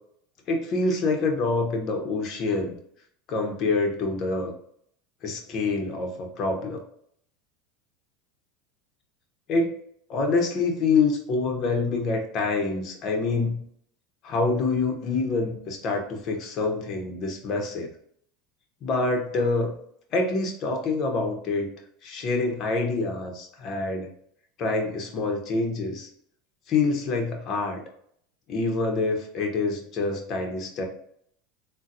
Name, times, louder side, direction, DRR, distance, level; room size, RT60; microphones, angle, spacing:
voice 1, 0.5-2.7 3.3-4.5 5.2-6.8 9.5-9.7 10.1-13.6 14.2-17.9 18.8-19.7 20.1-21.7 22.0-24.1 24.6-26.1 26.7-27.8 28.5-30.9, left 3 dB, 45° left, 2 dB, 0.9 m, -26 dB
3.8 x 2.2 x 2.7 m, 0.66 s
supercardioid pair, 110°, 0 cm